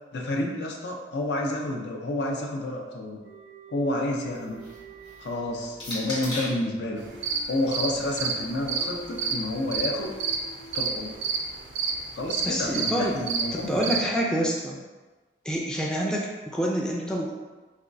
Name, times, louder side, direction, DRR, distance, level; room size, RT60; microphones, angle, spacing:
voice 1, 0.1-3.2 3.7-4.6 5.2-7.0 7.5-10.1 10.7-11.1 12.1-14.0, left 1 dB, 70° left, 0 dB, 0.5 m, -29 dB
sound 1, 3.2-12.4, equal, 90° left, 0.9 m, -47 dB
sound 2, 4.3-6.7 7.7-9.8, left 1 dB, 30° left, 0.9 m, -40 dB
sound 3, 7.0-14.0, right 5 dB, 90° right, 0.4 m, -29 dB
voice 2, 12.4-13.2 13.5-14.8 15.4-17.3, equal, 5° left, -2 dB, 0.3 m, -27 dB
4.2 x 2.3 x 2.5 m, 1.2 s
head